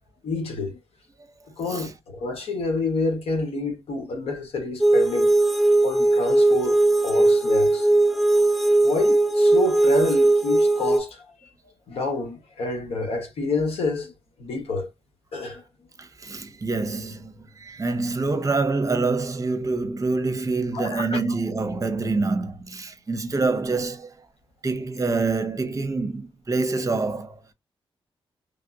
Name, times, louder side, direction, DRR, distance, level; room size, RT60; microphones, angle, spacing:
voice 1, 0.2-0.8 1.6-5.3 5.8-7.9 8.8-11.2 11.9-14.1 14.4-14.9 15.3-15.6 20.7-21.2, left 3 dB, 85° left, 1.2 m, -28 dB
sound 1, 4.8-11.0, right 2 dB, ahead, 0.6 m, -19 dB
voice 2, 16.0-24.1 24.6-27.4, right 3 dB, 35° right, 0.8 m, -26 dB
3.3 x 2.5 x 2.5 m
cardioid pair, 70°, 10 cm